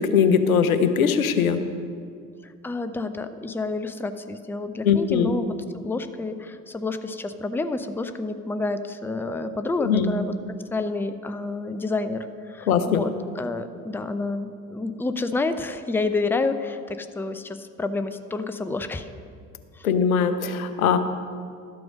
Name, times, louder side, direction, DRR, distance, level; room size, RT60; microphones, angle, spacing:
voice 1, 0.0-1.6 4.8-5.3 9.8-10.2 12.7-13.0 19.8-21.0, left 7 dB, 80° left, 10 dB, 0.6 m, -21 dB
voice 2, 2.4-10.3 10.7-19.1 19.7-19.9, left 3 dB, 5° left, 10 dB, 0.5 m, -29 dB
12.0 x 7.7 x 5.2 m, 2.3 s
figure-of-eight pair, 50°, 42 cm